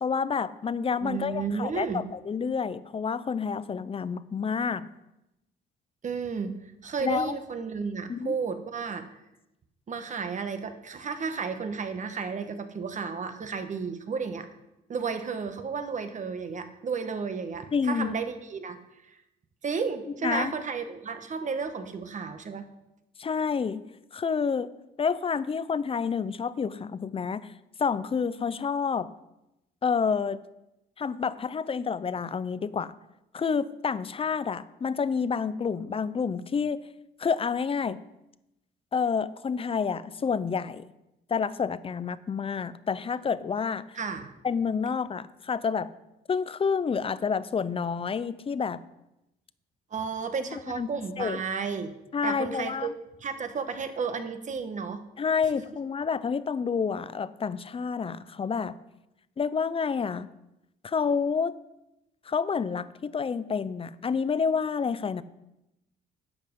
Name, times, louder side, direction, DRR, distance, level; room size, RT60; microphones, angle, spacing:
voice 1, 0.0-4.9 7.0-7.3 8.1-8.3 17.7-18.1 20.2-20.5 23.2-23.8 24.1-24.7 25.0-27.5 27.8-29.1 29.8-30.4 31.0-33.0 33.3-36.8 37.2-38.0 38.9-40.8 41.3-43.8 44.4-45.9 46.3-48.8 50.8-50.9 51.2-51.4 52.1-52.9 55.2-58.8 59.4-60.3 60.8-61.5 62.3-65.2, left 6 dB, 30° left, 15 dB, 0.6 m, -29 dB
voice 2, 1.0-2.1 6.0-9.1 9.9-14.5 14.9-19.2 19.6-22.7 43.9-44.3 49.9-51.9 52.2-55.0, right 5 dB, 40° right, 8 dB, 1.3 m, -33 dB
11.5 x 8.0 x 5.4 m, 0.91 s
cardioid pair, 95°, 19 cm